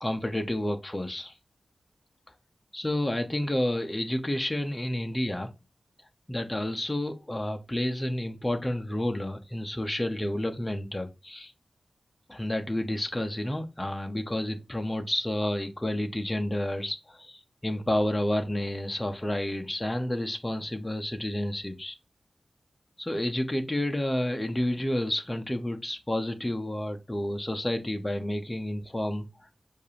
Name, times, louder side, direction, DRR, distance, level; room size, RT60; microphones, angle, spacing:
voice 1, 0.0-1.4 2.7-5.5 6.3-11.5 12.3-22.0 23.0-29.5, left 1 dB, 15° left, 0.5 m, -30 dB
6.5 x 2.4 x 2.7 m
wide cardioid pair, 105°, 0 cm